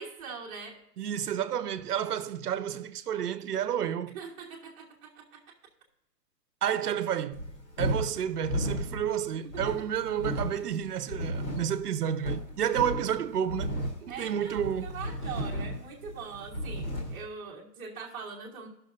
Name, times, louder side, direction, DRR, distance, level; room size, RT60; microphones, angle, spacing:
voice 1, 0.0-0.8 4.1-5.4 9.6-9.7 14.1-18.7, right 5 dB, 15° right, 1.5 m, -42 dB
voice 2, 1.0-4.2 6.6-7.5 7.8-14.9, right 9 dB, 65° right, 0.9 m, -30 dB
sound 1, 7.3-17.2, equal, 30° left, 2.1 m, -34 dB
17.0 x 6.2 x 2.6 m
hypercardioid pair, 170°, 49 cm